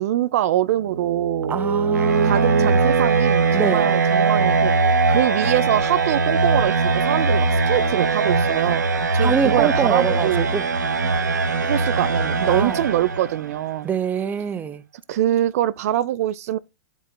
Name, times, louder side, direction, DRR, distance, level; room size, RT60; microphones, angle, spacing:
voice 1, 0.0-1.6 2.2-8.8 9.1-10.5 11.6-13.9 15.1-16.6, right 13 dB, 55° right, 0.5 m, -23 dB
sound 1, 0.7-13.6, right 4 dB, 85° right, 0.9 m, -21 dB
voice 2, 1.5-2.8 3.5-3.9 9.2-10.7 12.5-12.8 13.8-14.8, right 7 dB, 20° right, 0.7 m, -24 dB
11.5 x 4.7 x 2.2 m
hypercardioid pair, 110°, 9 cm